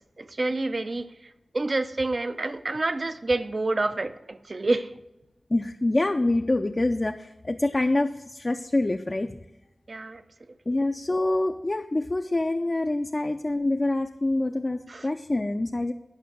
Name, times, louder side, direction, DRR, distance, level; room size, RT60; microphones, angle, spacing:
voice 1, 0.2-4.9 9.9-10.2 14.9-15.1, right 2 dB, 45° right, 0.6 m, -28 dB
voice 2, 5.5-9.3 10.7-15.9, left 2 dB, 30° left, 0.5 m, -26 dB
10.0 x 5.6 x 6.7 m
wide cardioid pair, 75°, 0 cm